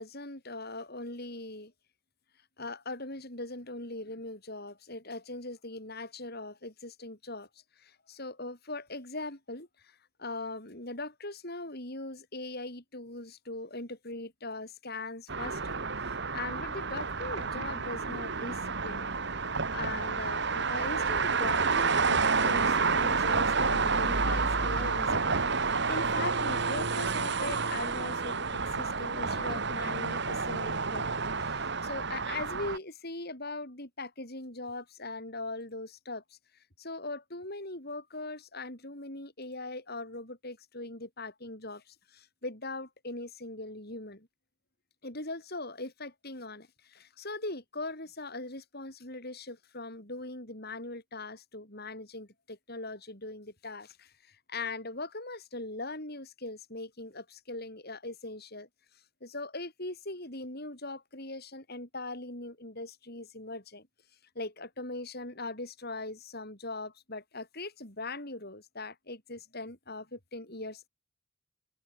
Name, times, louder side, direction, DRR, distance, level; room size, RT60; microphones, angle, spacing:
voice 1, 0.0-1.7 2.6-7.5 7.8-19.1 19.7-36.4 36.8-44.3 45.0-58.7 59.2-63.9 64.4-70.9, left 2 dB, 45° left, 5.4 m, -40 dB
sound 1, 15.3-32.8, right 4 dB, 50° right, 1.6 m, -29 dB
head